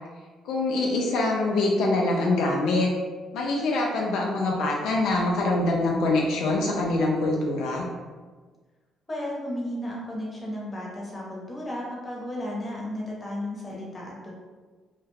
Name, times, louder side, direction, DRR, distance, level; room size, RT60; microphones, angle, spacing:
voice 1, 0.4-2.9 3.3-7.9, left 2 dB, 80° left, -1 dB, 0.4 m, -24 dB
voice 2, 9.1-14.3, left 1 dB, 25° left, -4 dB, 0.8 m, -34 dB
2.3 x 2.1 x 3.2 m, 1.4 s
cardioid pair, 85°, 0 cm